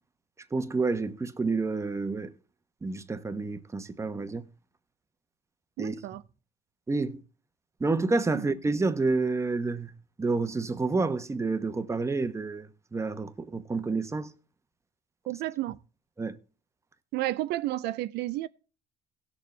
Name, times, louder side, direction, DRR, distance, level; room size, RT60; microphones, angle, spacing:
voice 1, 0.5-2.3 2.8-4.5 5.8-5.9 6.9-7.2 7.8-9.9 10.2-14.3 16.2-16.4, right 3 dB, 15° right, 1.0 m, -29 dB
voice 2, 5.8-6.2 8.3-8.5 15.3-15.8 17.1-18.5, right 16 dB, 80° right, 0.5 m, -31 dB
18.0 x 6.8 x 3.3 m
cardioid pair, 110°, 17 cm